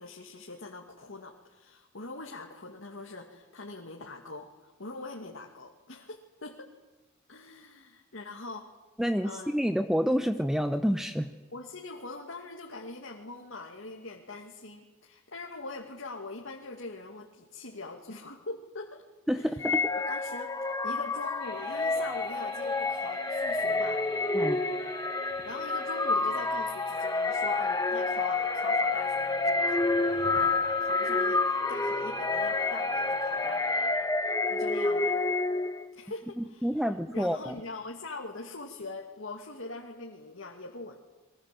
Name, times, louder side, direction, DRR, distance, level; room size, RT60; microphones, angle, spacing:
voice 1, 0.0-6.7 7.3-8.7 9.2-9.5 11.5-19.0 19.3-19.6 20.1-20.5 20.8-24.0 25.1-35.2 35.9-36.7 37.1-41.0, left 3 dB, 65° left, 0 dB, 2.4 m, -43 dB
voice 2, 9.0-11.3 19.3-19.9 24.3-24.6 36.4-37.6, equal, ahead, 8 dB, 0.8 m, -28 dB
sound 1, 19.6-35.8, left 3 dB, 15° left, 1.3 m, -29 dB
sound 2, 21.4-33.9, right 4 dB, 55° right, 3.6 m, -50 dB
29.5 x 22.5 x 7.8 m, 1.2 s
head